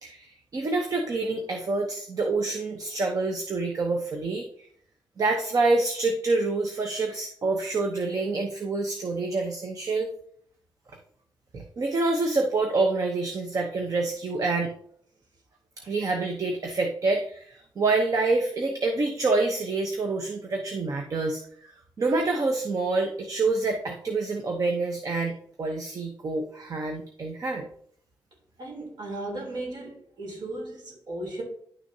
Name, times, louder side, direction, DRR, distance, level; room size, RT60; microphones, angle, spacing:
voice 1, 0.0-4.5 5.2-10.1 11.5-14.7 15.8-27.7, right 3 dB, 50° right, 3 dB, 0.9 m, -27 dB
voice 2, 28.6-31.4, right 2 dB, 70° right, -1 dB, 3.4 m, -36 dB
10.5 x 6.3 x 2.8 m, 0.62 s
wide cardioid pair, 145°, 8 cm